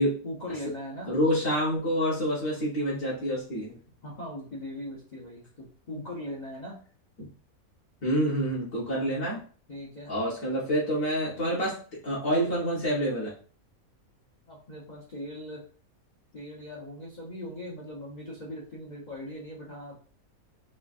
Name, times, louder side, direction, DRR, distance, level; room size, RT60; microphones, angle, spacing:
voice 1, 0.2-1.1 4.0-6.7 8.9-9.1 9.7-10.1 14.5-15.6 16.3-20.1, left 1 dB, 40° left, -5 dB, 0.7 m, -40 dB
voice 2, 1.1-3.8 7.2-7.3 8.0-9.4 10.1-11.8 12.0-13.3, equal, 65° left, -8 dB, 1.7 m, -27 dB
4.0 x 2.5 x 2.4 m, 0.42 s
omnidirectional pair, 1.5 m